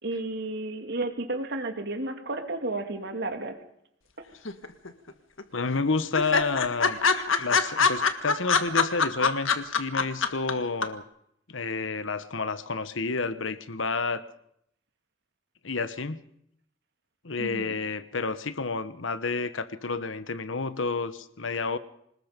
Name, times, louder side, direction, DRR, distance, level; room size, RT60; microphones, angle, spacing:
voice 1, 0.0-3.5 4.2-4.3 17.4-17.8, right 2 dB, 60° right, 6 dB, 2.6 m, -32 dB
sound 1, 4.5-5.1 5.4-5.5 5.8-5.9 6.1-10.5 10.8-10.9, left 5 dB, 85° left, 1.7 m, -23 dB
voice 2, 5.5-7.0 7.4-11.0 11.5-14.3 15.6-16.2 17.2-21.8, left 4 dB, 70° left, 13 dB, 1.2 m, -30 dB
26.0 x 20.0 x 5.3 m, 0.74 s
head